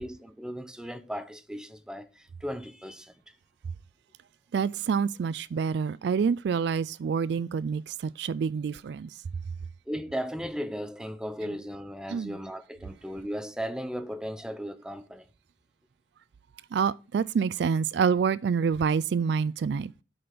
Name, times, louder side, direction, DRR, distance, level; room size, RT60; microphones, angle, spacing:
voice 1, 0.0-3.2 9.9-15.3, equal, 5° right, 0.7 m, -36 dB
voice 2, 4.5-9.1 12.1-12.4 16.7-19.9, right 6 dB, 65° right, 0.3 m, -27 dB
7.9 x 5.1 x 5.9 m
head